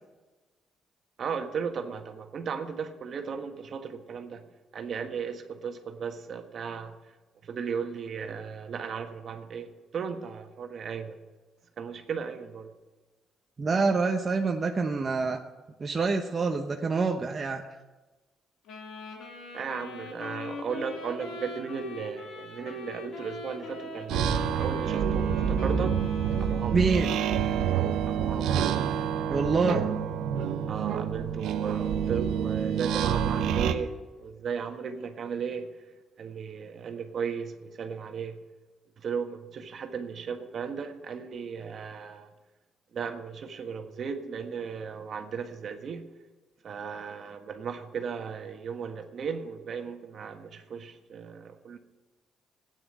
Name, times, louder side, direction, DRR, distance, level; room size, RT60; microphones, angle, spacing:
voice 1, 1.2-4.4 4.7-7.0 7.4-11.2 11.8-12.7 19.5-26.0 26.4-26.8 28.1-28.5 30.7-35.7 36.2-38.4 39.0-42.3 42.9-46.0 46.6-51.8, right 6 dB, 55° right, 6 dB, 1.5 m, -36 dB
voice 2, 13.6-15.4 15.8-17.6 26.7-27.2 29.3-29.8, right 4 dB, 35° right, 3 dB, 0.9 m, -26 dB
Wind instrument woodwind instrument, 18.7-27.2, left 3 dB, 85° left, 2.6 m, -42 dB
sound 1, 24.1-33.7, right 8 dB, 85° right, 0.8 m, -27 dB
12.5 x 9.4 x 9.1 m, 1.2 s
cardioid pair, 90°, 0 cm